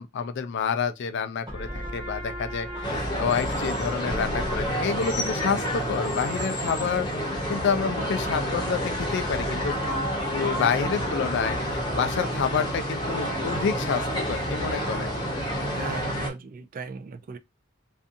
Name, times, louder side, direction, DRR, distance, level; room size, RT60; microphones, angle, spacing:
voice 1, 0.0-9.9 10.3-15.1, left 6 dB, 60° left, 0.4 m, -28 dB
sound 1, 1.5-8.8, equal, 20° right, 1.3 m, -39 dB
sound 2, 2.8-16.3, equal, 20° left, 0.8 m, -29 dB
voice 2, 15.7-17.4, right 4 dB, 40° right, 0.3 m, -36 dB
2.5 x 2.4 x 2.5 m
head